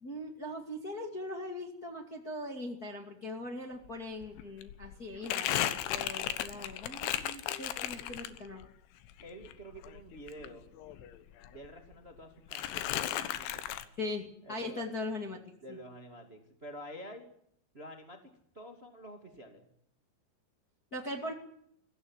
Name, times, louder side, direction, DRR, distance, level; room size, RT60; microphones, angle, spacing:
voice 1, 0.0-8.7 14.0-15.4 15.7-15.8 20.9-21.3, left 1 dB, 30° left, 2 dB, 1.9 m, -40 dB
Crumpling crinkling, 3.9-4.0 4.2-8.7 9.0-11.2 11.4-12.2 12.5-13.9, left 12 dB, 85° left, 3.7 m, -35 dB
voice 2, 9.2-10.7 11.5-13.8 14.4-14.9 15.6-17.3 17.7-19.7, equal, 20° right, 4 dB, 1.9 m, -49 dB
22.5 x 16.5 x 9.7 m, 0.71 s
omnidirectional pair, 5.2 m